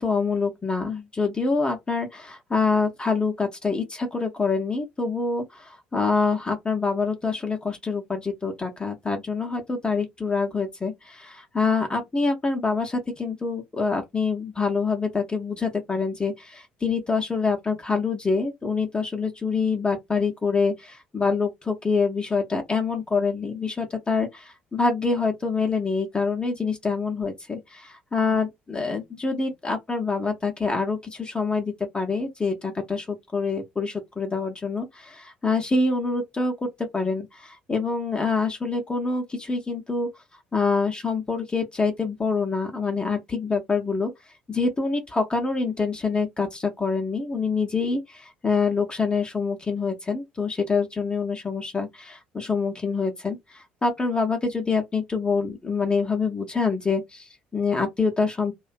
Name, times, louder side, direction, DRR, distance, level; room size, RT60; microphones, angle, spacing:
voice 1, 0.0-40.1 40.5-44.1 44.5-58.5, left 4 dB, 20° left, 0.6 m, -26 dB
2.5 x 2.2 x 2.4 m
figure-of-eight pair, 55°, 5 cm